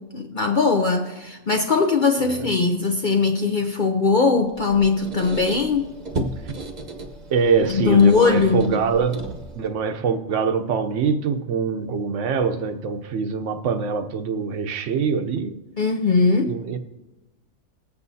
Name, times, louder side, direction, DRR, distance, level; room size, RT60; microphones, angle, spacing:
voice 1, 0.0-5.9 7.7-8.7 15.8-16.6, left 4 dB, 55° left, 0.6 m, -20 dB
Squeak, 4.5-9.7, right 2 dB, 35° right, 0.9 m, -34 dB
voice 2, 7.3-9.3 9.5-15.6 16.5-16.8, right 5 dB, 60° right, 1.0 m, -24 dB
20.5 x 8.2 x 2.7 m
omnidirectional pair, 1.5 m